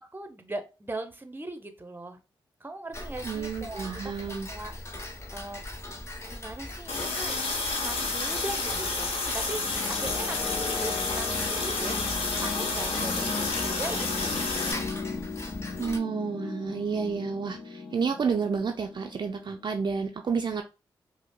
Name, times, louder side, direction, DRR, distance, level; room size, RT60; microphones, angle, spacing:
voice 1, 0.0-2.2 2.6-4.1 4.5-5.0 5.3-5.6 6.3-7.4 7.8-12.0 12.4-14.8, right 2 dB, 20° right, 8 dB, 0.8 m, -39 dB
Tick-tock, 2.9-16.0, left 1 dB, 30° left, 0.9 m, -40 dB
voice 2, 3.2-4.5 15.8-20.6, right 5 dB, 50° right, 4 dB, 0.4 m, -30 dB
Water tap faucet, 6.9-14.7, left 3 dB, 80° left, 0.8 m, -30 dB
sound 1, 9.2-20.1, left 4 dB, 50° left, 0.6 m, -37 dB
5.0 x 2.0 x 2.2 m, 0.29 s
supercardioid pair, 45°, 10 cm